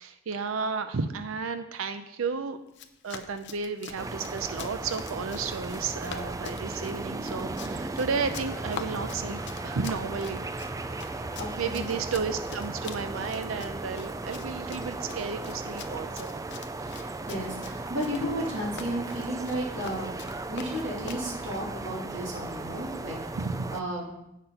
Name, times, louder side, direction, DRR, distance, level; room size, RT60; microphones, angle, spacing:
voice 1, 0.0-2.6 3.0-10.4 11.6-16.4 23.3-23.7, right 5 dB, 80° right, 9 dB, 0.5 m, -33 dB
Run, 2.7-21.3, left 6 dB, 60° left, 0.7 m, -45 dB
sound 1, 4.0-23.8, right 2 dB, 15° right, 0.3 m, -36 dB
sound 2, 8.3-16.1, right 2 dB, ahead, 2.0 m, -47 dB
voice 2, 11.0-11.8 16.8-20.1 20.5-23.2 23.7-24.0, equal, 60° right, -4 dB, 3.0 m, -33 dB
8.4 x 5.9 x 5.6 m, 0.86 s
head